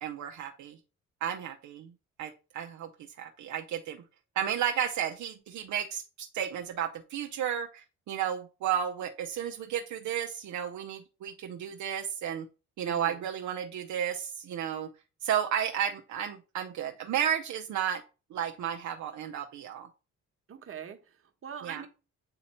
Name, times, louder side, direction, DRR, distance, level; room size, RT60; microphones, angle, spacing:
voice 1, 0.0-0.8 1.2-1.9 2.2-2.9 3.2-4.0 4.4-12.4 12.8-14.9 15.2-18.0 18.3-19.9 21.6-21.8, right 9 dB, 70° right, 3 dB, 0.7 m, -33 dB
voice 2, 12.8-13.2 20.5-21.9, right 7 dB, 45° right, 5 dB, 1.2 m, -43 dB
8.6 x 2.9 x 4.3 m, 0.32 s
cardioid pair, 90°, 30 cm